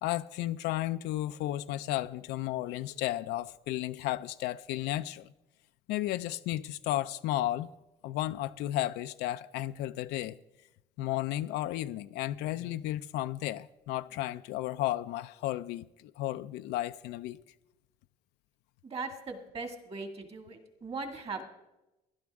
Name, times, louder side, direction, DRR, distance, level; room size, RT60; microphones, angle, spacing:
voice 1, 0.0-5.3 5.9-7.7 8.0-10.4 11.0-17.4, left 14 dB, 85° left, 0.4 m, -33 dB
voice 2, 18.8-21.4, right 4 dB, 35° right, 2.0 m, -39 dB
16.5 x 11.5 x 3.5 m
cardioid pair, 110°, 17 cm